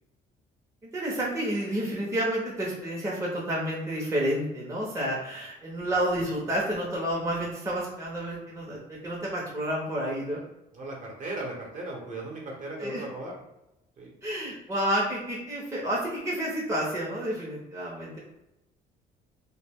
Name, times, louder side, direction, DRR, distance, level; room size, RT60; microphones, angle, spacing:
voice 1, 0.8-10.4 12.8-13.0 14.2-18.2, right 1 dB, 15° right, -4 dB, 0.6 m, -30 dB
voice 2, 10.7-13.4 14.0-14.1, right 2 dB, 45° right, -1 dB, 0.8 m, -37 dB
2.1 x 2.1 x 3.4 m, 0.92 s
cardioid pair, 110°, 17 cm